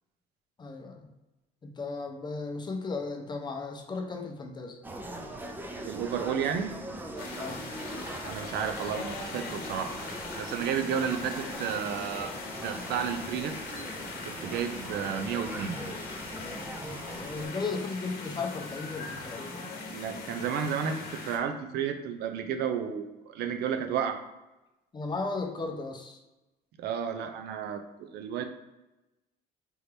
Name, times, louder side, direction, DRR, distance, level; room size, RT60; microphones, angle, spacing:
voice 1, 0.6-1.0 1.6-4.8 7.4-7.6 10.9-11.2 17.1-19.7 24.9-26.2, left 3 dB, 25° left, 3 dB, 0.7 m, -35 dB
sound 1, 4.8-17.5, right 1 dB, 10° right, 0.5 m, -41 dB
voice 2, 5.8-6.7 8.2-9.9 10.4-12.3 12.6-13.5 14.3-15.8 19.9-24.2 26.8-28.4, right 8 dB, 75° right, 7 dB, 0.5 m, -32 dB
sound 2, 7.2-21.4, left 3 dB, 65° left, 1.0 m, -40 dB
4.6 x 2.7 x 3.3 m, 1.0 s
cardioid pair, 110°, 17 cm